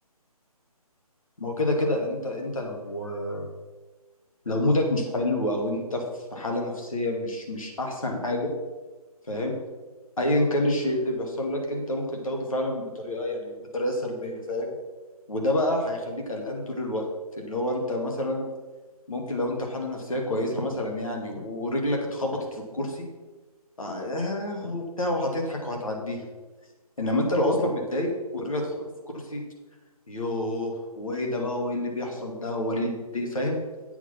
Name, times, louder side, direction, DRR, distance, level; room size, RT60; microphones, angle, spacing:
voice 1, 1.4-3.5 4.5-6.0 6.3-8.5 9.3-9.6 10.2-14.8 15.3-17.0 17.4-18.5 19.1-23.1 23.8-26.2 27.0-29.4 30.1-33.6, left 1 dB, 60° left, 1 dB, 2.3 m, -28 dB
8.3 x 6.3 x 5.9 m, 1.3 s
figure-of-eight pair, 150°, 20 cm